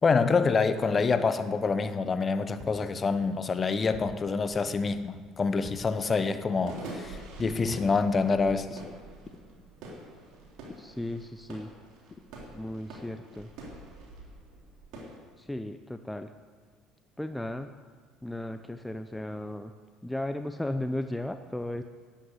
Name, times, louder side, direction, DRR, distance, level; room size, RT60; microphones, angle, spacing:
voice 1, 0.0-8.8, left 4 dB, 30° left, 1.1 m, -26 dB
sound 1, 2.6-2.8 3.9-4.1 5.6-5.8 7.6-7.9, right 1 dB, 40° right, 5.7 m, -45 dB
sound 2, 5.0-15.2, right 2 dB, 70° right, 3.4 m, -47 dB
voice 2, 10.8-11.7 12.5-13.5 15.4-16.3 17.2-17.7 18.2-19.7 20.0-21.8, left 1 dB, 5° left, 0.7 m, -35 dB
11.5 x 11.0 x 8.2 m
supercardioid pair, 75°, 0 cm